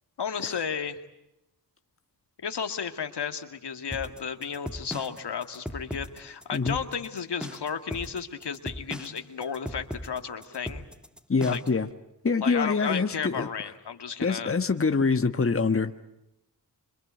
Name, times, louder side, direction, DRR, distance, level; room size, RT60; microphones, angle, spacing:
voice 1, 0.2-1.0 2.4-10.8 11.5-11.6 12.4-14.5, left 6 dB, 70° left, 7 dB, 2.3 m, -33 dB
sound 1, 3.9-11.8, equal, ahead, 1.7 m, -38 dB
voice 2, 11.3-11.9 12.2-13.5 14.2-15.9, left 4 dB, 30° left, 8 dB, 1.5 m, -25 dB
27.0 x 25.0 x 8.3 m, 0.88 s
cardioid pair, 55°, 41 cm